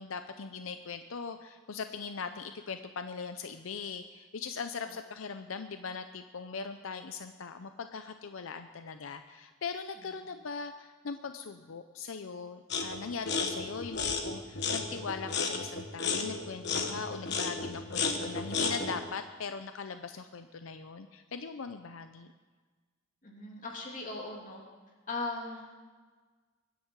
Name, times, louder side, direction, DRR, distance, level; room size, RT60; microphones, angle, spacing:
voice 1, 0.0-22.3, left 5 dB, 80° left, 9 dB, 0.6 m, -40 dB
sound 1, 12.7-13.0 13.2-19.0, left 4 dB, 55° left, 1.4 m, -33 dB
voice 2, 23.2-24.6 25.1-25.8, left 3 dB, 40° left, -1 dB, 2.8 m, -39 dB
23.0 x 10.0 x 4.7 m, 1.4 s
head